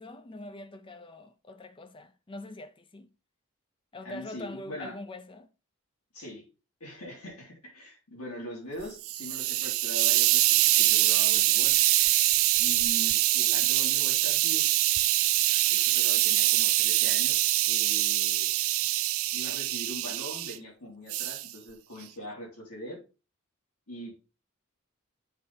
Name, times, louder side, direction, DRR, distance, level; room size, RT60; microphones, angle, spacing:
voice 1, 0.0-3.1 3.9-5.5, left 1 dB, 20° left, 0.4 m, -43 dB
voice 2, 4.0-4.9 6.1-6.4 6.8-11.7 12.6-15.0 15.3-18.5 19.3-23.0 23.9-24.1, equal, 85° left, 3.5 m, -42 dB
Hiss, 8.8-20.6 21.1-21.5, right 17 dB, 70° right, 0.4 m, -24 dB
7.9 x 3.7 x 4.2 m
head